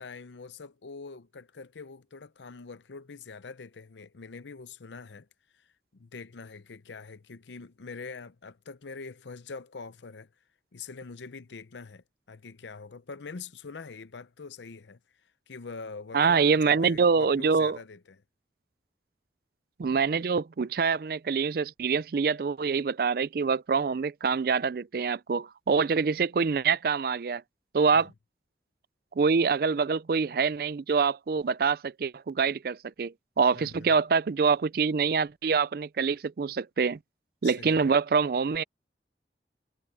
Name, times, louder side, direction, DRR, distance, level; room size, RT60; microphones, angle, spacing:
voice 1, 0.0-5.3 5.5-10.3 10.7-15.0 15.5-18.2 27.9-28.1 33.5-33.9 37.4-38.0, left 4 dB, 80° left, 0.7 m, -44 dB
voice 2, 16.1-17.8 19.8-27.4 27.7-28.1 29.2-37.0 37.4-38.6, right 5 dB, 55° right, 0.4 m, -25 dB
head